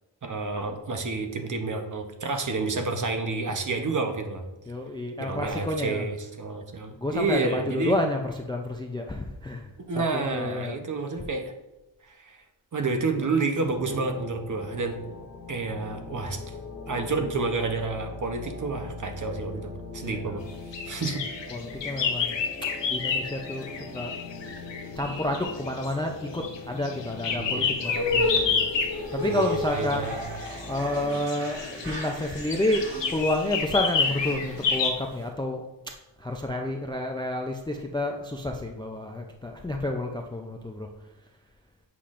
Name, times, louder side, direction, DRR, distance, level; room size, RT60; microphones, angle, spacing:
voice 1, 0.2-4.4 5.2-7.9 9.9-11.4 12.2-12.4 12.7-15.0 15.5-16.4 16.9-20.4 20.9-21.2 27.3-27.7 29.2-30.3 31.1-31.2, right 3 dB, 40° right, 5 dB, 0.8 m, -29 dB
voice 2, 4.7-6.1 7.0-9.7 10.1-10.8 20.0-20.4 21.5-22.4 22.9-24.1 25.0-28.7 29.1-30.1 30.7-35.6 36.2-40.9, left 1 dB, 10° left, 3 dB, 0.3 m, -30 dB
sound 1, 13.6-31.1, left 3 dB, 40° left, 0.9 m, -41 dB
sound 2, 20.5-34.9, left 5 dB, 65° left, 1.0 m, -30 dB
sound 3, 27.8-35.2, left 1 dB, 60° right, 1.8 m, -34 dB
8.4 x 5.7 x 2.5 m, 0.99 s
wide cardioid pair, 135°, 47 cm